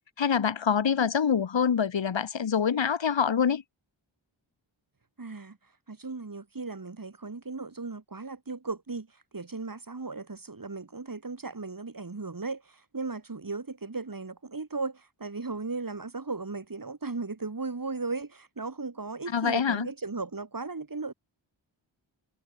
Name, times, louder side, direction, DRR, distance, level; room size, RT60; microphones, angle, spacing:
voice 1, 0.2-3.6 19.3-19.9, left 7 dB, 70° left, 1.6 m, -25 dB
voice 2, 5.2-5.6 5.9-21.1, right 3 dB, 45° right, 6.8 m, -36 dB
wide cardioid pair, 70°, 47 cm